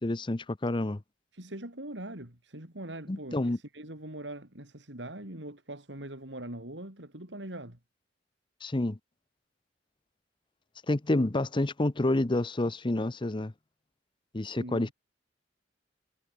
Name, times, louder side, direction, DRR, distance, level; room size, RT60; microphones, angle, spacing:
voice 1, 0.0-1.0 3.1-3.6 8.6-9.0 10.9-13.5 14.3-14.9, left 2 dB, 25° left, 0.8 m, -28 dB
voice 2, 1.3-7.8 14.4-14.9, right 1 dB, 70° right, 4.9 m, -42 dB
head